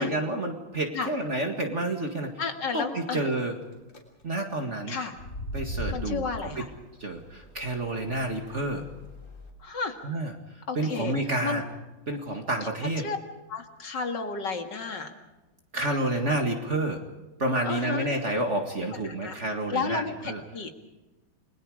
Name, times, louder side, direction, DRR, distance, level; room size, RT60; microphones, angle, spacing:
voice 1, 0.0-2.4 2.7-3.5 4.2-5.0 5.5-6.3 6.6-6.7 7.0-8.9 10.0-10.3 10.8-11.6 12.1-13.1 15.7-17.0 17.4-20.4, right 1 dB, 35° right, 3 dB, 2.2 m, -29 dB
voice 2, 2.4-3.3 4.9-5.1 5.9-6.7 9.6-10.0 10.7-11.1 11.4-11.6 12.6-12.7 13.0-13.2 13.5-15.1 17.7-18.1 19.2-19.4 19.7-20.7, left 5 dB, 65° left, 5 dB, 2.6 m, -32 dB
sound 1, 3.6-4.0 5.1-9.5, equal, 40° left, 3.8 m, -39 dB
29.5 x 21.5 x 5.0 m, 1.1 s
omnidirectional pair, 2.1 m